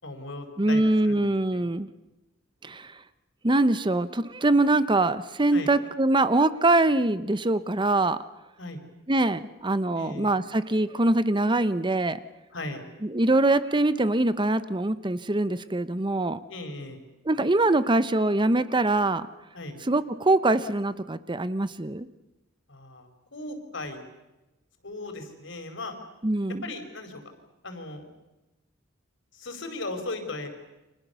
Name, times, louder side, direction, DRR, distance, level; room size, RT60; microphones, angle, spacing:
voice 1, 0.0-1.6 5.5-5.7 8.6-8.8 9.9-10.4 12.5-12.9 16.5-17.0 19.5-19.8 22.7-24.0 24.8-25.9 26.6-27.2 27.6-28.1 29.3-30.5, left 2 dB, 70° left, 6 dB, 4.8 m, -37 dB
voice 2, 0.6-1.9 2.6-3.0 3.4-8.2 9.1-12.2 13.0-16.4 17.2-19.3 19.8-22.1 26.2-26.6, right 2 dB, 25° right, 13 dB, 0.8 m, -23 dB
30.0 x 26.0 x 7.0 m, 1.0 s
head